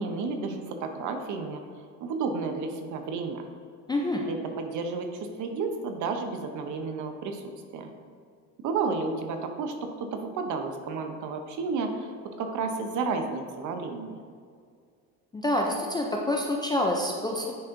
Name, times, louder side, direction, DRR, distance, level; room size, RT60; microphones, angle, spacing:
voice 1, 0.0-1.6 2.0-3.5 4.3-7.4 7.7-7.9 8.6-9.7 10.0-14.2, right 4 dB, 55° right, 6 dB, 0.8 m, -32 dB
voice 2, 3.9-4.2 15.3-17.5, left 1 dB, 10° left, -1 dB, 0.3 m, -27 dB
9.4 x 4.2 x 2.6 m, 2.1 s
cardioid pair, 130°, 37 cm